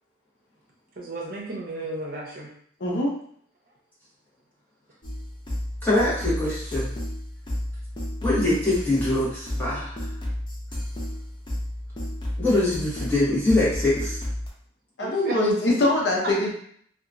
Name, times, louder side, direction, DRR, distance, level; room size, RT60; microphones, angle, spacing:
voice 1, 1.0-2.5 15.0-15.4 16.2-16.3, right 2 dB, 50° right, -2 dB, 0.7 m, -33 dB
voice 2, 2.8-3.1 15.0-16.5, left 1 dB, 65° left, -2 dB, 0.6 m, -22 dB
sound 1, 5.0-14.5, left 1 dB, 25° left, 0.5 m, -32 dB
voice 3, 5.8-6.9 8.2-10.0 12.4-14.2, left 2 dB, 10° left, -9 dB, 1.1 m, -23 dB
2.8 x 2.3 x 2.5 m, 0.62 s
head